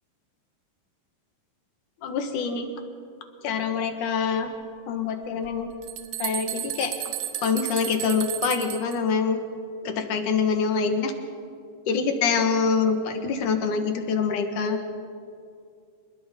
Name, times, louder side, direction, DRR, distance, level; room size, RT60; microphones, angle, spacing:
voice 1, 2.0-2.7 3.4-4.5 4.9-5.7 6.2-6.9 7.4-9.4 9.8-11.1 11.9-14.8, left 5 dB, 70° left, 5 dB, 3.0 m, -25 dB
sound 1, 5.4-9.0, right 13 dB, 85° right, 2.8 m, -33 dB
26.5 x 21.0 x 5.2 m, 2.4 s
omnidirectional pair, 3.9 m